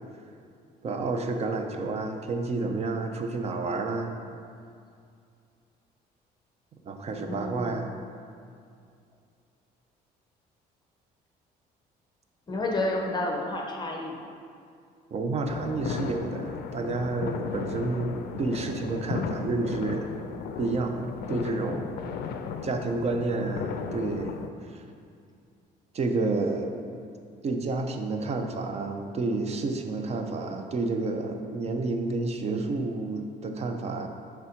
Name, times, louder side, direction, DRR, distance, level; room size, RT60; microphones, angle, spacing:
voice 1, 0.8-4.1 6.9-7.9 15.1-20.2 20.6-21.0 21.3-22.0 22.6-24.4 25.9-26.8 27.4-34.1, right 3 dB, 40° right, 5 dB, 0.6 m, -30 dB
voice 2, 7.1-7.7 12.5-14.2, left 2 dB, 25° left, 0 dB, 0.6 m, -30 dB
sound 1, 15.5-24.5, left 6 dB, 70° left, 0.4 m, -35 dB
5.5 x 3.5 x 5.0 m, 2.3 s
cardioid pair, 110°, 17 cm